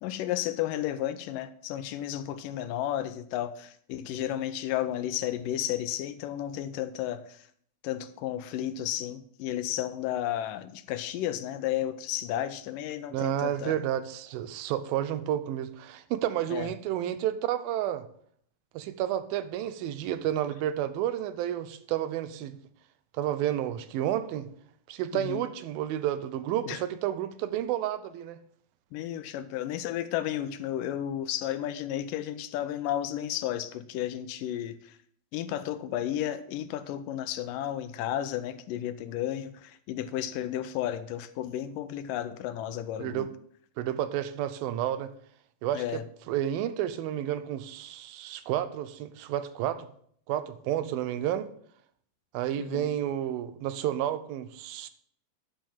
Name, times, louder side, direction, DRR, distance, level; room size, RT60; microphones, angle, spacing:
voice 1, 0.0-7.5 7.8-13.8 16.5-16.7 25.1-25.4 26.7-26.8 28.9-35.0 35.3-43.3 45.7-46.0 52.6-52.9, left 12 dB, 80° left, 2.1 m, -33 dB
voice 2, 13.1-18.1 18.7-22.6 23.1-24.5 24.9-28.4 43.0-43.3 43.8-45.1 45.6-46.0 46.3-49.9 50.3-51.5 52.3-54.9, right 11 dB, 85° right, 2.5 m, -31 dB
11.5 x 5.3 x 7.4 m
omnidirectional pair, 4.2 m